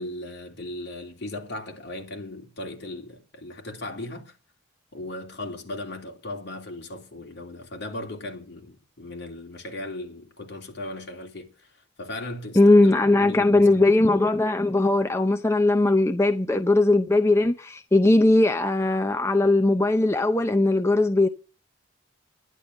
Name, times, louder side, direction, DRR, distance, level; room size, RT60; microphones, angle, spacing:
voice 1, 0.0-4.4 4.9-13.9, left 1 dB, 55° left, 3.0 m, -37 dB
voice 2, 12.6-21.3, left 2 dB, 15° left, 0.6 m, -19 dB
11.5 x 11.0 x 6.4 m
head